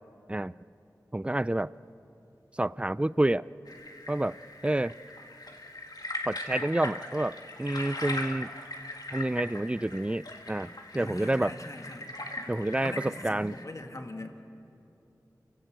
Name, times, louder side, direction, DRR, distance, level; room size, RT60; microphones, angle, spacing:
voice 1, 1.1-1.7 2.5-3.5 4.1-4.4 4.6-4.9 6.3-7.3 7.6-8.5 9.1-11.5 12.5-13.5, right 1 dB, 15° right, 18 dB, 0.4 m, -28 dB
sound 1, 3.6-13.6, left 1 dB, 65° left, 2.0 m, -40 dB
voice 2, 11.0-12.1 12.4-12.5 12.8-14.3, left 1 dB, 50° left, 3 dB, 2.2 m, -41 dB
28.0 x 16.0 x 8.2 m, 2.8 s
wide cardioid pair, 40°, 7 cm